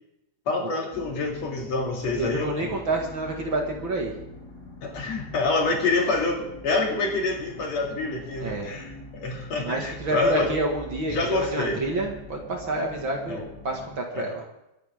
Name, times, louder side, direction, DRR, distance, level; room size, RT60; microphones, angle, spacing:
voice 1, 0.5-2.7 4.8-10.6 11.1-11.8 13.3-13.4 14.1-14.3, left 3 dB, 50° left, 0 dB, 3.1 m, -27 dB
sound 1, 0.9-14.0, left 1 dB, 25° left, 0.5 m, -43 dB
voice 2, 2.2-4.1 8.4-8.7 9.5-11.2 11.5-14.3, right 2 dB, 45° right, 0 dB, 1.9 m, -29 dB
23.5 x 10.5 x 3.6 m, 0.88 s
omnidirectional pair, 4.3 m